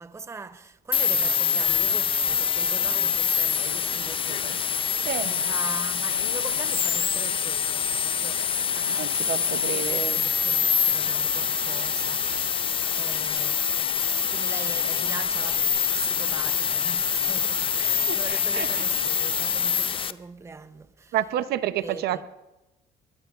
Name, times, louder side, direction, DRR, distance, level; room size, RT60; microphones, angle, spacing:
voice 1, 0.0-13.6 14.3-21.2 21.8-22.2, right 4 dB, 15° right, 0.7 m, -41 dB
sound 1, 0.9-20.1, left 7 dB, 30° left, 0.5 m, -25 dB
voice 2, 9.0-10.2 18.1-18.8 21.1-22.3, right 12 dB, 70° right, 0.7 m, -29 dB
22.0 x 20.5 x 2.4 m
cardioid pair, 110°, 17 cm